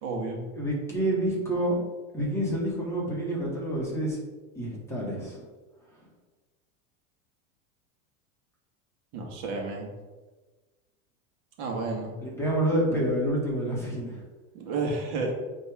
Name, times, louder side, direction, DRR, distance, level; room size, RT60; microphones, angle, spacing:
voice 1, 0.0-0.4 9.1-9.9 11.6-12.1 14.5-15.3, right 3 dB, 60° right, 0 dB, 1.8 m, -31 dB
voice 2, 0.6-1.8 2.1-4.2 4.6-5.4 12.2-14.2, right 1 dB, 5° left, -6 dB, 1.7 m, -28 dB
8.7 x 3.5 x 3.6 m, 1.3 s
supercardioid pair, 130°, 43 cm